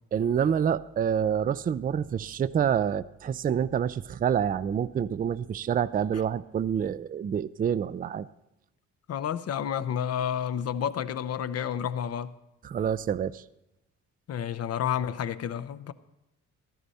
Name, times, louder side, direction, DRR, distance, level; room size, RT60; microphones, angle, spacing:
voice 1, 0.1-8.3 12.6-13.4, right 8 dB, 30° right, 0.4 m, -27 dB
voice 2, 9.1-12.3 14.3-15.9, left 9 dB, 55° left, 0.7 m, -30 dB
14.5 x 12.5 x 4.1 m
cardioid pair, 90°, 30 cm